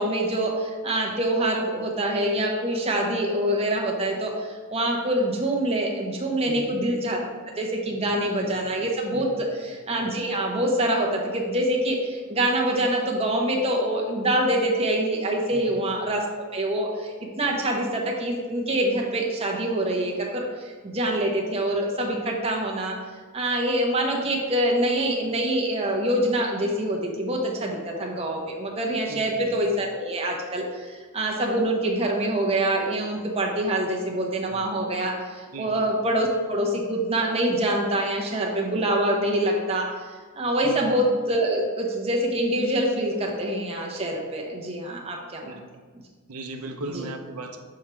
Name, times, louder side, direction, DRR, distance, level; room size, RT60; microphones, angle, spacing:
voice 1, 0.0-7.2 7.5-16.2 16.5-23.0 23.3-39.9 40.3-45.6 46.9-47.1, right 1 dB, 25° right, -1 dB, 0.9 m, -25 dB
voice 2, 29.1-29.5 35.5-35.8 40.6-40.8 45.5-45.7 46.3-47.6, right 2 dB, 90° right, 4 dB, 0.6 m, -37 dB
7.1 x 4.8 x 3.1 m, 1.5 s
head